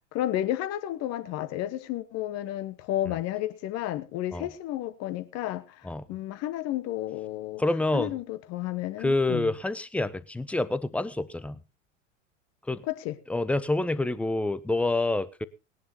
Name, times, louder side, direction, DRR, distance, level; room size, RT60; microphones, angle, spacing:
voice 1, 0.1-7.6 7.9-9.6 12.8-13.2, left 13 dB, 40° left, 1.3 m, -32 dB
voice 2, 7.6-8.1 9.0-11.6 12.7-12.8 13.3-15.5, left 2 dB, 5° left, 0.5 m, -27 dB
19.5 x 11.0 x 2.9 m
figure-of-eight pair, 80°, 38 cm